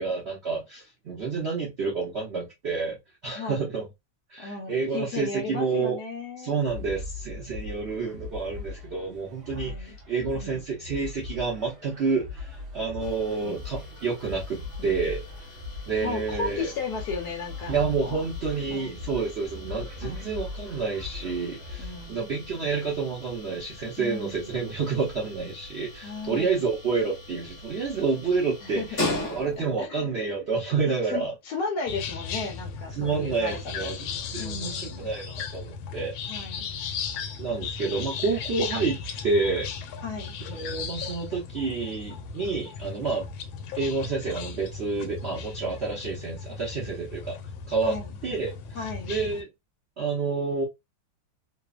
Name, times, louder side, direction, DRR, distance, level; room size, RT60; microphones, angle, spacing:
voice 1, 0.0-3.0 3.2-3.9 4.3-6.0 6.4-15.2 15.9-16.7 17.7-31.3 32.9-34.1 34.3-36.1 37.4-39.7 40.5-43.3 43.7-47.3 47.7-48.0 48.2-48.5 48.8-49.5 50.0-50.6, right 4 dB, 75° right, 0.6 m, -29 dB
voice 2, 4.4-6.6 7.7-8.5 9.5-9.9 10.3-10.6 13.4-13.6 14.8-15.0 16.0-17.7 18.0-18.2 18.7-19.0 20.0-20.2 21.8-22.2 24.0-24.5 26.0-26.6 28.6-28.9 29.2-29.3 29.6-30.1 31.1-33.9 34.4-35.1 36.3-36.7 40.0-40.3 47.8-48.1 48.7-49.1, left 4 dB, 65° left, 1.1 m, -35 dB
sound 1, 6.7-22.1, left 3 dB, 50° right, 1.0 m, -40 dB
sound 2, 13.0-29.9, left 1 dB, 35° left, 1.3 m, -40 dB
sound 3, 31.9-49.4, left 6 dB, 85° left, 1.4 m, -36 dB
3.2 x 2.0 x 2.3 m
omnidirectional pair, 2.1 m